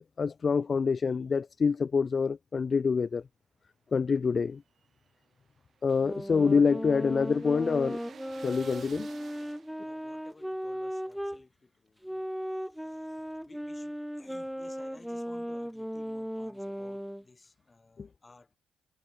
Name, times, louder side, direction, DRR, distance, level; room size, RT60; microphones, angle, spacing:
voice 1, 0.0-3.2 3.9-4.6 5.8-8.0 8.4-9.1 18.0-18.1, left 5 dB, 40° left, 0.7 m, -26 dB
sound 1, 4.5-10.0, right 7 dB, 50° right, 3.1 m, -54 dB
sound 2, 5.9-11.4 12.0-17.2, equal, ahead, 2.9 m, -37 dB
voice 2, 8.5-9.2 9.8-12.3 12.6-18.6, left 3 dB, 25° left, 4.4 m, -58 dB
cardioid pair, 90°, 0 cm